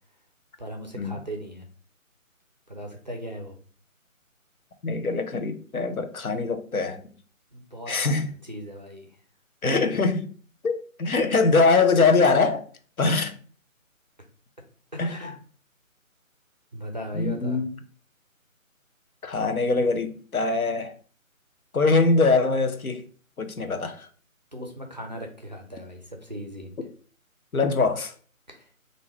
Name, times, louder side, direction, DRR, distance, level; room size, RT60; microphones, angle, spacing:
voice 1, 0.6-1.7 2.7-3.5 7.5-9.1 14.9-15.4 16.7-17.6 24.5-26.8 28.5-28.7, equal, 35° right, 0.5 m, -38 dB
voice 2, 4.8-7.0 7.9-8.3 9.6-10.3 10.6-12.7 13.0-13.3 15.0-15.2 17.1-17.7 19.2-20.9 21.7-23.0 23.4-24.1 27.5-28.1, left 3 dB, 80° left, 0.8 m, -23 dB
3.4 x 2.7 x 3.1 m
figure-of-eight pair, 155°, 42 cm